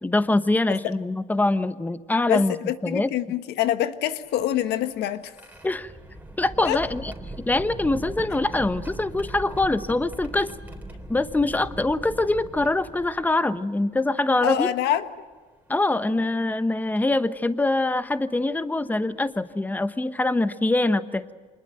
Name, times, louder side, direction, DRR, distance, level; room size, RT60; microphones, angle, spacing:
voice 1, 0.0-2.6 2.8-3.1 5.6-5.9 6.4-7.1 7.4-10.5 11.1-14.7 15.7-21.3, left 2 dB, 10° left, 12 dB, 1.1 m, -24 dB
voice 2, 2.3-5.3 6.6-6.8 14.4-15.1, left 11 dB, 80° left, 10 dB, 1.5 m, -25 dB
sound 1, 4.2-13.5 14.4-14.5 16.0-16.2 17.0-17.2 18.8-18.9 19.3-19.5, right 1 dB, 10° right, 3.5 m, -40 dB
26.5 x 21.0 x 7.9 m, 1.5 s
cardioid pair, 110°, 17 cm